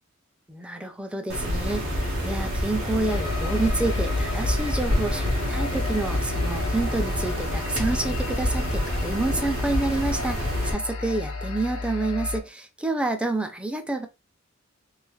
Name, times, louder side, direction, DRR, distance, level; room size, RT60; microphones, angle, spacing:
voice 1, 0.5-1.9 2.2-14.1, right 2 dB, 5° right, 0.4 m, -28 dB
sound 1, 1.3-10.7, equal, 90° right, 1.3 m, -27 dB
sound 2, 3.1-12.4, left 3 dB, 85° left, 0.7 m, -32 dB
3.1 x 2.9 x 2.2 m
head